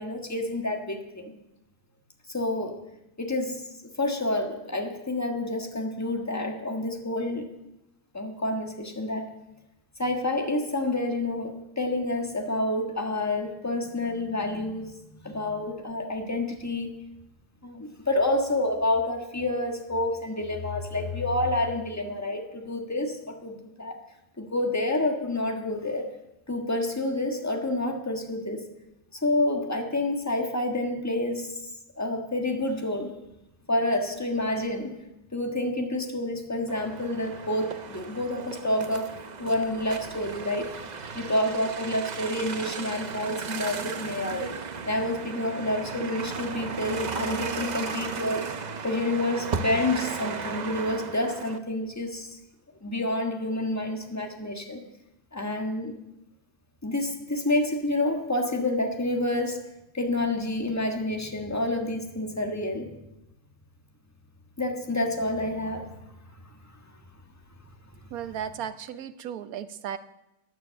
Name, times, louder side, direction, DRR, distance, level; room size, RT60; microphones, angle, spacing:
voice 1, 0.0-1.3 2.3-2.8 3.2-3.6 4.0-7.5 8.1-9.3 10.0-16.9 17.6-24.0 24.4-26.1 26.5-28.7 29.1-31.7 32.0-33.1 33.7-35.0 35.3-44.5 44.8-48.5 48.8-52.4 52.8-54.8 55.3-55.9 56.8-59.6 59.9-62.9 64.6-66.2 66.6-66.7, left 1 dB, 10° left, 3 dB, 1.5 m, -28 dB
sound 1, 36.7-51.6, right 5 dB, 45° right, 0.5 m, -35 dB
voice 2, 68.1-70.0, right 9 dB, 70° right, 11 dB, 1.2 m, -35 dB
15.0 x 9.4 x 6.5 m, 0.92 s
omnidirectional pair, 1.7 m